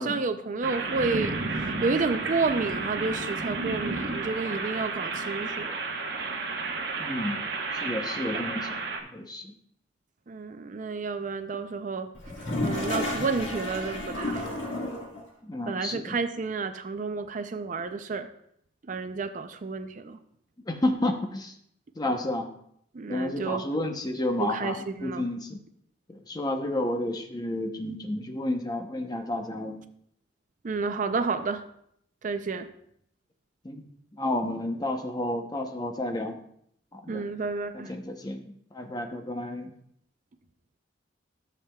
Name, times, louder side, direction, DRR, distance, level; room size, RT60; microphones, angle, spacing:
voice 1, 0.0-5.8 10.3-12.1 12.4-14.8 15.7-18.3 18.8-20.2 22.9-23.6 24.4-25.3 30.6-31.6 32.2-32.7 37.1-37.9, right 4 dB, 45° right, 9 dB, 0.4 m, -31 dB
sound 1, 0.6-9.0, right 3 dB, 65° right, 1.0 m, -32 dB
voice 2, 7.0-7.4 7.7-8.8 9.1-9.5 15.4-16.2 20.7-21.5 22.0-22.5 23.1-25.6 26.1-29.8 33.6-36.4 36.9-37.3 37.7-39.7, left 1 dB, 20° left, 5 dB, 0.7 m, -31 dB
Toilet flush, 12.1-15.2, left 1 dB, 80° left, 1.7 m, -31 dB
13.0 x 7.2 x 2.3 m, 0.70 s
head